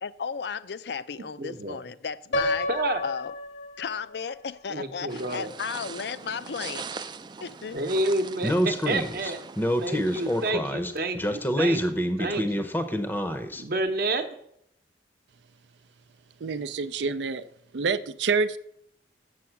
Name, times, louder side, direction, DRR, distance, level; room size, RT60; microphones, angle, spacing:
voice 1, 0.0-2.7 3.0-3.3 3.8-6.9 7.4-7.8, left 6 dB, 70° left, 0.5 m, -34 dB
voice 2, 1.4-1.8 2.7-3.0 4.7-5.5 7.7-9.4 9.8-12.7 13.6-14.4, right 2 dB, 55° right, 0.9 m, -29 dB
Piano, 2.3-4.3, left 1 dB, 90° left, 1.6 m, -30 dB
sound 1, 5.1-10.5, right 5 dB, 25° right, 0.3 m, -41 dB
Speech, 8.4-13.6, equal, 10° left, 0.6 m, -26 dB
voice 3, 16.4-17.5 17.7-18.6, right 4 dB, 85° right, 0.5 m, -27 dB
7.7 x 7.0 x 5.8 m
head